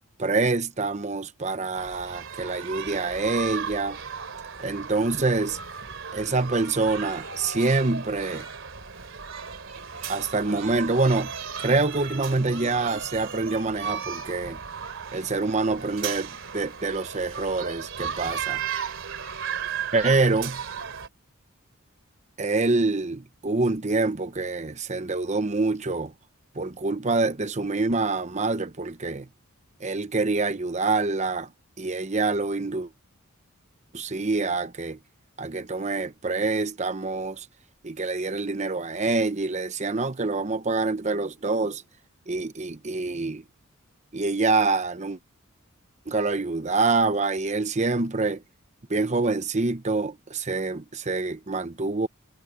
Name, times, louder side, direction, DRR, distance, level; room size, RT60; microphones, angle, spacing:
voice 1, 0.2-4.0 4.6-5.6 6.1-8.5 10.1-11.3 11.6-14.6 15.1-18.6 19.9-20.6 22.4-26.1 26.5-29.3 29.8-31.5 31.8-32.9 33.9-35.0 35.4-37.5 37.8-41.8 42.3-43.4 44.1-45.2 46.1-48.4 48.9-52.1, right 3 dB, 35° right, 0.9 m, -26 dB
sound 1, 1.7-21.1, right 7 dB, 60° right, 3.1 m, -35 dB
head